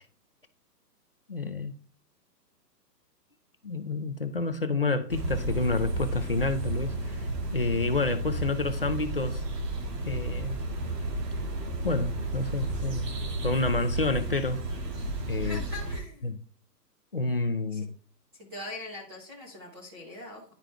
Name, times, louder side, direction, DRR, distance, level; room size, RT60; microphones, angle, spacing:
voice 1, 1.3-1.7 3.6-7.2 7.5-9.4 10.0-10.7 11.8-13.2 13.4-14.6 15.3-15.6 16.2-16.4 17.1-17.9, left 3 dB, 40° left, 0.4 m, -29 dB
sound 1, 5.1-16.0, right 2 dB, 70° right, 2.1 m, -32 dB
voice 2, 15.4-16.3 17.7-17.9 18.4-20.4, left 2 dB, 15° right, 1.0 m, -42 dB
10.5 x 5.0 x 3.4 m
hypercardioid pair, 175°, 49 cm